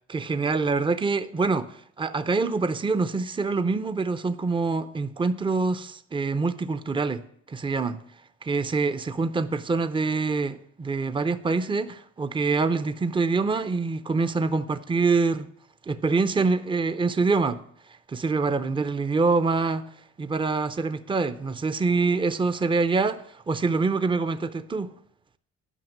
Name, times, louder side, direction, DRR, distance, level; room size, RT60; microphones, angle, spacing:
voice 1, 0.1-8.0 8.4-15.5 15.9-17.6 18.1-19.8 20.2-24.9, right 4 dB, 15° right, 0.6 m, -25 dB
11.0 x 5.7 x 7.1 m
cardioid pair, 90°, 30 cm